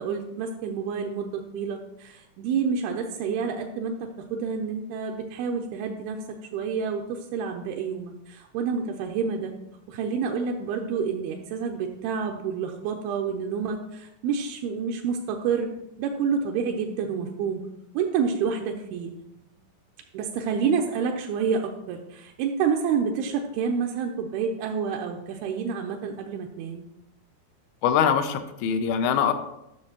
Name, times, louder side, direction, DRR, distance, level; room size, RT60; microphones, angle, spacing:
voice 1, 0.0-6.2 6.5-9.6 9.9-15.7 16.0-17.7 17.9-19.1 20.1-26.8, right 6 dB, 85° right, 2 dB, 2.5 m, -28 dB
voice 2, 27.8-29.3, left 8 dB, 80° left, 9 dB, 2.4 m, -23 dB
9.7 x 6.5 x 2.9 m, 0.86 s
omnidirectional pair, 4.5 m